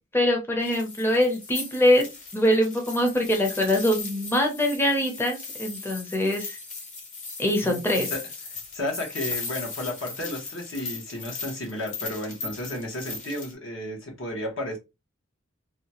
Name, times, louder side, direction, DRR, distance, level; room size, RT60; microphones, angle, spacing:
voice 1, 0.1-2.0 2.3-6.6 7.4-8.1, left 1 dB, 10° left, 0.5 m, -23 dB
sound 1, 0.6-13.5, left 4 dB, 40° left, 0.8 m, -38 dB
voice 2, 7.6-8.2 8.7-14.8, left 1 dB, 75° left, 1.1 m, -33 dB
2.7 x 2.2 x 2.8 m
head